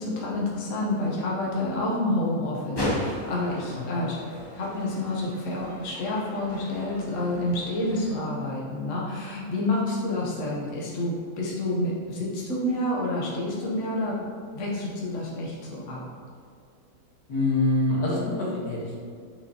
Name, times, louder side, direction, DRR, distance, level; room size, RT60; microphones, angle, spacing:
voice 1, 0.0-4.2 4.5-16.0, left 1 dB, 55° left, -4 dB, 1.3 m, -29 dB
sound 1, 2.8-8.2, left 1 dB, 20° left, 0.7 m, -36 dB
voice 2, 3.7-4.0 17.3-19.0, left 2 dB, 85° left, -5 dB, 1.9 m, -25 dB
6.3 x 5.1 x 2.9 m, 2.3 s
omnidirectional pair, 1.6 m